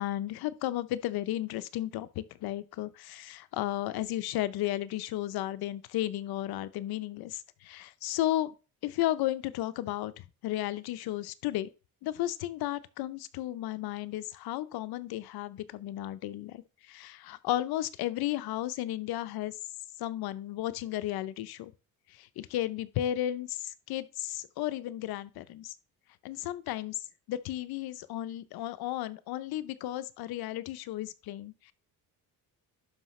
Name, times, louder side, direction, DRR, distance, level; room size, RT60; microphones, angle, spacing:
voice 1, 0.0-8.5 8.8-11.7 12.0-19.5 20.0-21.7 22.1-25.7 26.2-27.0 27.3-31.7, left 14 dB, 90° left, 0.6 m, -34 dB
11.5 x 5.0 x 3.1 m
cardioid pair, 135°, 36 cm